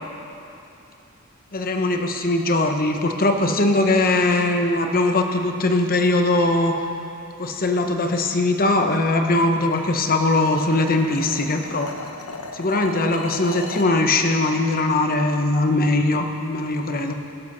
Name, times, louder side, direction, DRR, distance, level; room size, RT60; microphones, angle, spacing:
voice 1, 1.5-6.8 7.4-11.9 12.5-17.1, left 2 dB, 40° left, 5 dB, 0.9 m, -20 dB
sound 1, 9.6-14.0, left 3 dB, 80° left, 0.9 m, -37 dB
17.5 x 11.5 x 4.0 m, 2.7 s
head